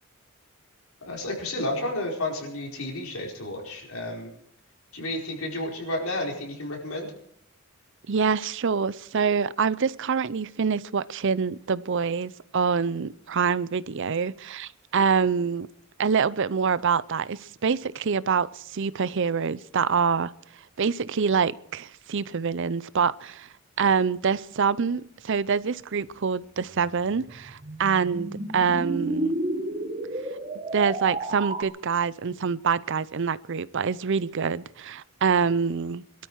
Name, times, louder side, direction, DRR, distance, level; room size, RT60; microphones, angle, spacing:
voice 1, 1.0-4.3 4.9-7.1, left 1 dB, 90° left, 4.8 m, -31 dB
voice 2, 8.1-15.7 16.0-20.3 20.8-23.5 23.8-29.3 30.7-36.0, right 6 dB, 60° right, 0.6 m, -25 dB
sound 1, 26.7-31.6, right 2 dB, 30° right, 1.2 m, -31 dB
23.0 x 13.0 x 4.7 m
head